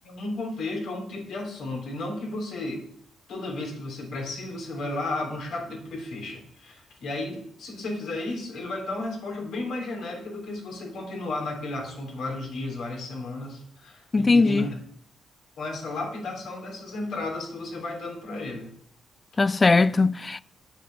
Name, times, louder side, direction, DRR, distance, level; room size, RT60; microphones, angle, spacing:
voice 1, 0.0-2.8 3.3-14.7 15.6-18.7, left 2 dB, 75° left, 3.3 m, -33 dB
voice 2, 14.1-14.7 19.4-20.4, left 3 dB, 30° left, 0.4 m, -20 dB
7.9 x 7.0 x 5.5 m
cardioid pair, 70°, 0 cm